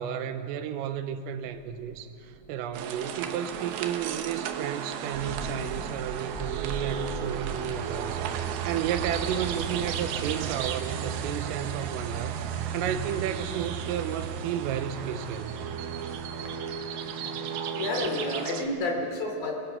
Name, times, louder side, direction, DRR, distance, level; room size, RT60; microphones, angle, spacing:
voice 1, 0.0-12.4 12.7-15.5, right 9 dB, 90° right, 9 dB, 3.6 m, -33 dB
Thunder, 1.4-17.2, right 3 dB, 20° right, 3.9 m, -44 dB
sound 1, 2.7-18.7, right 8 dB, 75° right, 2.4 m, -34 dB
voice 2, 17.7-19.5, left 2 dB, 50° left, 2 dB, 4.2 m, -30 dB
30.0 x 20.5 x 5.8 m, 2.5 s
omnidirectional pair, 5.9 m